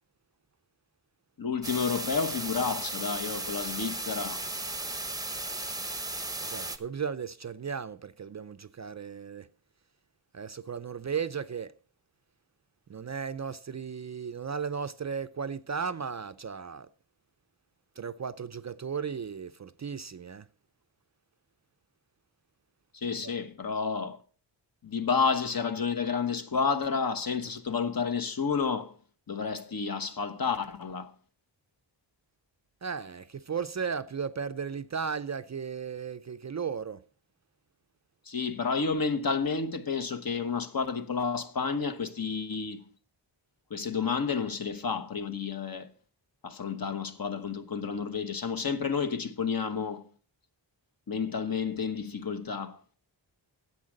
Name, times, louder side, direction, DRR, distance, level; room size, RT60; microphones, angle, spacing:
voice 1, 1.4-4.5 22.9-24.2 24.8-28.9 29.3-31.1 38.3-42.9 43.7-45.9 46.4-50.1 51.1-52.8, left 5 dB, 50° left, 1.1 m, -30 dB
sound 1, 1.6-6.8, right 2 dB, 10° right, 0.7 m, -35 dB
voice 2, 6.4-9.5 10.3-11.7 12.9-16.9 18.0-20.5 23.2-23.3 32.8-37.0, right 6 dB, 40° right, 0.4 m, -35 dB
9.6 x 7.5 x 6.4 m
wide cardioid pair, 105°, 46 cm